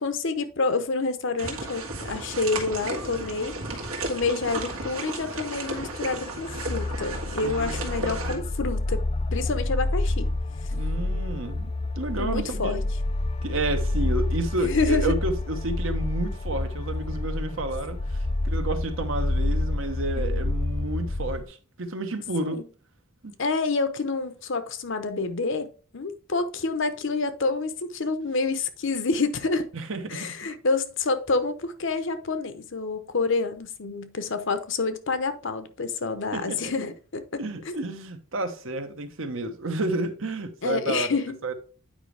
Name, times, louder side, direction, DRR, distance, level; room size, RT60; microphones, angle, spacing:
voice 1, 0.0-3.5 4.0-9.0 9.3-10.3 12.2-12.8 14.6-15.1 20.2-20.5 22.4-22.6 23.4-29.7 30.1-37.8 40.6-41.4, left 3 dB, 60° left, 0.8 m, -28 dB
sound 1, 1.4-8.3, right 2 dB, 85° right, 1.7 m, -34 dB
sound 2, 5.8-21.4, left 2 dB, 30° left, 0.4 m, -28 dB
voice 2, 7.4-8.4 10.7-12.8 13.4-22.6 23.2-23.3 29.7-30.3 36.3-36.7 37.4-41.1 41.4-41.5, right 2 dB, 65° right, 1.1 m, -31 dB
8.9 x 5.1 x 3.3 m
head